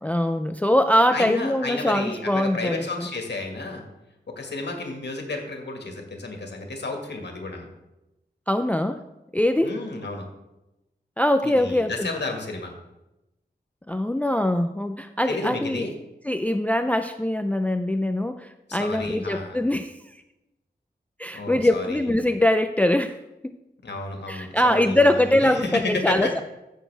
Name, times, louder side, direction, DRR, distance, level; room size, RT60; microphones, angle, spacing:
voice 1, 0.0-3.1 8.5-9.0 9.3-9.7 11.2-12.1 13.9-15.8 16.2-20.0 21.2-23.2 23.4-23.5 24.3-26.4, left 1 dB, 10° left, 9 dB, 0.4 m, -22 dB
voice 2, 1.1-3.8 4.3-7.7 9.6-10.2 11.4-12.7 15.3-15.9 18.7-19.6 21.3-22.0 23.8-26.3, left 2 dB, 80° left, 2 dB, 1.8 m, -31 dB
15.5 x 6.4 x 3.4 m, 0.94 s
wide cardioid pair, 100°, 18 cm